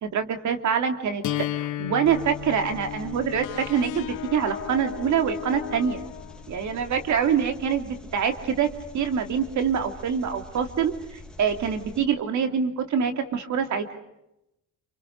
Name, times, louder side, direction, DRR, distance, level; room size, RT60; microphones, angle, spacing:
voice 1, 0.0-1.2 1.6-6.0 6.5-8.7 8.9-13.9, right 7 dB, 70° right, 6 dB, 3.0 m, -25 dB
sound 1, 1.2-7.2, left 13 dB, 75° left, 1.5 m, -36 dB
Engine, 2.1-12.0, left 1 dB, 5° left, 3.0 m, -45 dB
sound 2, 3.4-7.0, left 12 dB, 90° left, 1.4 m, -37 dB
28.5 x 28.0 x 6.6 m, 0.84 s
cardioid pair, 90°, 30 cm